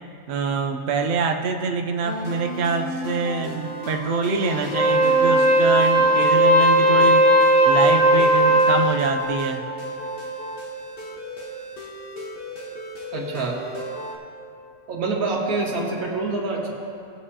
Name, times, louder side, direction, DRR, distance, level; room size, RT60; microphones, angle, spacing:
voice 1, 0.3-7.3 7.6-9.6, right 4 dB, 55° right, 4 dB, 0.8 m, -25 dB
sound 1, 2.0-14.2, equal, 40° left, 1.4 m, -34 dB
Wind instrument woodwind instrument, 4.6-8.9, right 1 dB, 60° left, 1.7 m, -16 dB
voice 2, 13.1-13.6 14.9-16.7, right 3 dB, 70° right, -3 dB, 1.8 m, -26 dB
18.0 x 7.5 x 2.8 m, 2.5 s
omnidirectional pair, 1.6 m